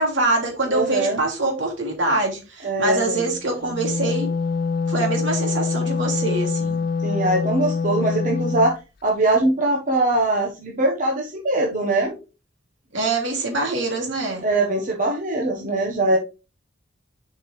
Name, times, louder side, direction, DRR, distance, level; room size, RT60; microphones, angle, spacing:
voice 1, 0.0-4.3 4.9-6.8 12.9-14.4, right 2 dB, 75° right, 1 dB, 2.8 m, -24 dB
voice 2, 0.7-1.2 2.6-3.3 7.0-8.8 9.0-12.2 14.4-16.2, right 2 dB, 45° right, 0 dB, 1.3 m, -22 dB
Wind instrument woodwind instrument, 3.6-8.7, left 4 dB, 50° left, 0.5 m, -24 dB
7.3 x 5.3 x 3.3 m, 0.30 s
head